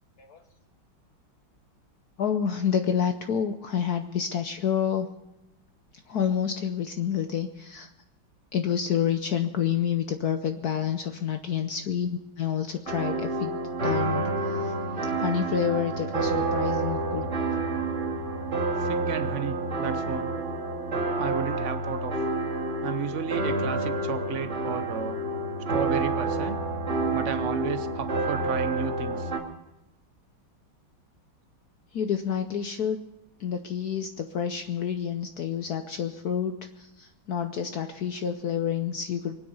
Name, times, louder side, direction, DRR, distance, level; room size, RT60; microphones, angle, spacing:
voice 1, 2.2-5.1 6.1-7.9 8.5-13.5 13.8-14.7 15.2-17.3 31.9-33.0 33.4-39.4, left 8 dB, 60° left, 7 dB, 1.1 m, -28 dB
sound 1, 12.9-29.4, right 2 dB, 35° right, 2.6 m, -29 dB
voice 2, 18.8-20.3 21.2-22.1 22.8-25.2 25.7-26.6 27.1-29.3, right 7 dB, 60° right, 10 dB, 0.8 m, -33 dB
24.0 x 9.6 x 5.5 m, 0.90 s
omnidirectional pair, 2.3 m